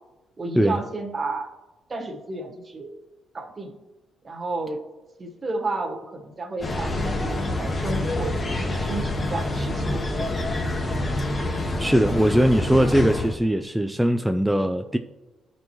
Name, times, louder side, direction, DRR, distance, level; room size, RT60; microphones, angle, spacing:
voice 1, 0.4-1.5 1.9-2.9 3.3-3.8 4.2-4.8 5.2-8.4 8.6-9.9 10.2-10.3, right 2 dB, 30° right, 2 dB, 1.3 m, -32 dB
sound 1, 6.6-13.4, left 1 dB, 30° left, 1.0 m, -26 dB
voice 2, 11.8-15.0, equal, 5° right, 6 dB, 0.3 m, -20 dB
12.0 x 4.4 x 3.1 m, 1.1 s
cardioid pair, 90°, 0 cm